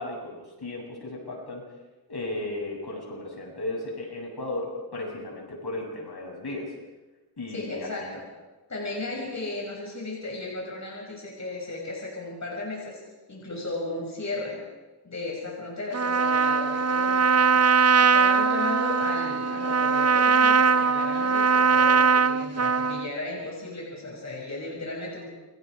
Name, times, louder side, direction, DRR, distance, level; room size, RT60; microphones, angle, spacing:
voice 1, 0.0-1.6 2.1-6.7 7.4-8.1, left 2 dB, 65° left, -1 dB, 7.9 m, -35 dB
voice 2, 7.5-8.3 8.7-13.0 13.3-14.6 15.0-25.3, left 2 dB, 40° left, -2 dB, 6.0 m, -35 dB
Trumpet, 15.9-23.1, right 5 dB, 35° right, 0.6 m, -21 dB
29.0 x 25.5 x 4.8 m, 1.1 s
wide cardioid pair, 115°, 42 cm